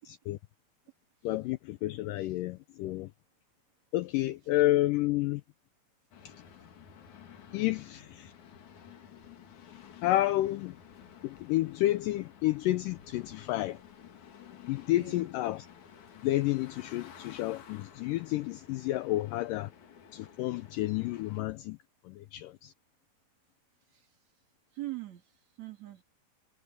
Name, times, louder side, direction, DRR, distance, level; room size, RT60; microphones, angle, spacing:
voice 1, 1.2-3.1 3.9-5.4 6.3-6.4 7.5-8.3 10.0-10.8 11.2-13.8 14.7-15.7 16.2-19.7 20.1-21.8 22.1-22.7, left 16 dB, 85° left, 1.9 m, -30 dB
sound 1, 6.1-21.4, left 8 dB, 55° left, 3.3 m, -53 dB
voice 2, 15.0-15.3 23.9-24.2 24.7-26.0, right 17 dB, 50° right, 3.6 m, -43 dB
omnidirectional pair, 4.4 m